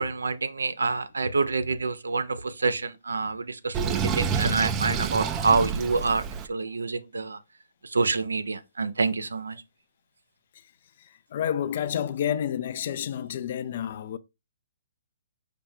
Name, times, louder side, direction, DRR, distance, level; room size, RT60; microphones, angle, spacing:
voice 1, 0.0-6.2 6.5-7.4 7.9-9.6, right 4 dB, 90° right, 0.5 m, -27 dB
Sink (filling or washing), 3.7-6.5, right 6 dB, 20° right, 0.4 m, -28 dB
voice 2, 11.0-14.2, left 9 dB, 50° left, 0.4 m, -30 dB
5.0 x 2.2 x 4.3 m
hypercardioid pair, 145°, 0 cm